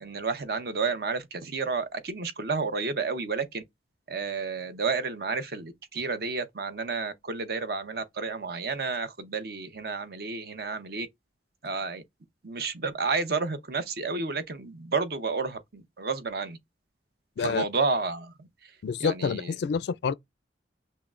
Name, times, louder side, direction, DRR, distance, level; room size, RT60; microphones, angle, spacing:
voice 1, 0.0-3.6 4.1-11.1 11.6-12.0 12.4-16.6 17.4-18.5 19.0-19.5, right 4 dB, 60° right, 0.8 m, -31 dB
voice 2, 18.8-20.2, left 6 dB, 70° left, 0.3 m, -28 dB
5.7 x 2.1 x 2.4 m
head